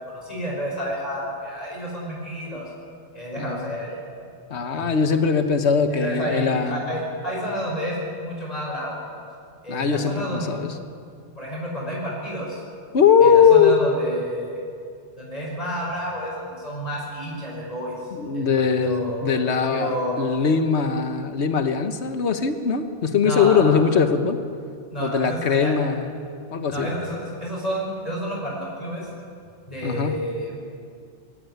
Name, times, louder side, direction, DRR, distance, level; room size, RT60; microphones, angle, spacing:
voice 1, 0.1-2.6 3.1-4.1 4.7-4.9 5.9-9.0 9.6-10.6 11.4-12.6 13.2-14.6 15.2-17.9 18.3-20.3 23.2-23.9 24.9-25.8 26.7-29.1 29.7-30.5, equal, 35° left, -4 dB, 6.0 m, -30 dB
voice 2, 3.4-3.7 4.5-6.8 9.7-10.7 12.9-13.8 18.1-24.4 25.0-26.1 26.5-27.0 29.8-30.2, left 6 dB, 75° left, 8 dB, 1.5 m, -20 dB
21.5 x 16.0 x 9.5 m, 2.3 s
omnidirectional pair, 1.2 m